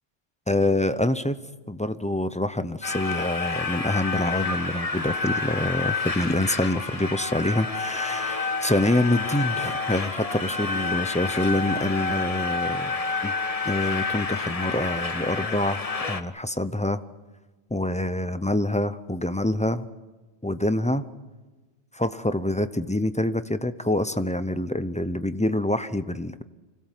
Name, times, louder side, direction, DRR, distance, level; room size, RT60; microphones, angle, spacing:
voice 1, 0.5-1.4 1.7-12.9 13.2-13.3 13.6-17.0 17.7-19.9 20.4-21.0 21.9-26.4, left 1 dB, 10° left, 12 dB, 0.4 m, -26 dB
sound 1, 2.8-16.2, left 4 dB, 35° left, 1.0 m, -29 dB
25.5 x 17.5 x 7.5 m, 1.2 s
omnidirectional pair, 1.2 m